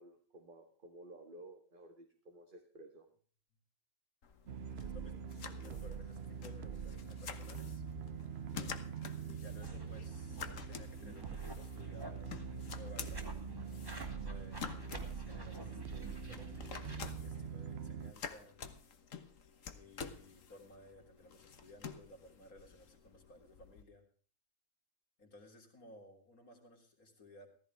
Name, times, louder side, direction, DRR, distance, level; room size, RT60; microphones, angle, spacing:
voice 1, 0.0-3.1, right 1 dB, 35° right, 3 dB, 2.1 m, -55 dB
sound 1, 4.2-23.8, left 6 dB, 65° left, 1.6 m, -50 dB
sound 2, 4.5-18.1, right 6 dB, 55° right, 1.0 m, -44 dB
voice 2, 4.7-7.8 9.3-13.3 14.1-18.6 19.7-24.0 25.2-27.5, left 1 dB, 85° left, 2 dB, 3.8 m, -58 dB
sound 3, 9.6-17.1, right 1 dB, 15° right, 2.2 m, -51 dB
16.0 x 15.0 x 3.4 m, 0.42 s
omnidirectional pair, 1.5 m